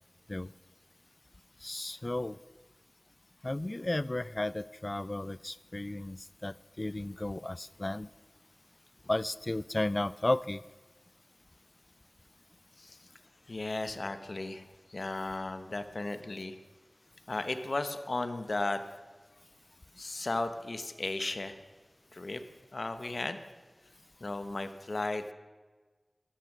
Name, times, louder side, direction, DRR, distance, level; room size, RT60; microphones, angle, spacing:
voice 1, 1.6-2.4 3.4-8.1 9.1-10.6, left 2 dB, 40° left, 19 dB, 0.4 m, -34 dB
voice 2, 13.5-16.6 17.3-18.8 20.0-21.6 22.1-22.4 22.7-23.4 24.2-25.3, left 2 dB, 65° left, 10 dB, 1.0 m, -35 dB
13.5 x 12.0 x 6.1 m, 1.3 s
wide cardioid pair, 40°, 0 cm